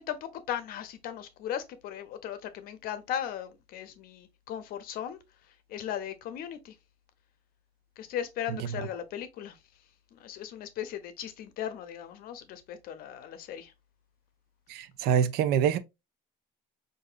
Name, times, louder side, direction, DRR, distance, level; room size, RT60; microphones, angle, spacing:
voice 1, 0.0-5.2 5.7-6.7 8.0-9.6 10.1-13.7, left 10 dB, 60° left, 0.7 m, -37 dB
voice 2, 14.7-15.8, right 8 dB, 70° right, 0.5 m, -25 dB
4.8 x 2.6 x 2.4 m
cardioid pair, 130°, 17 cm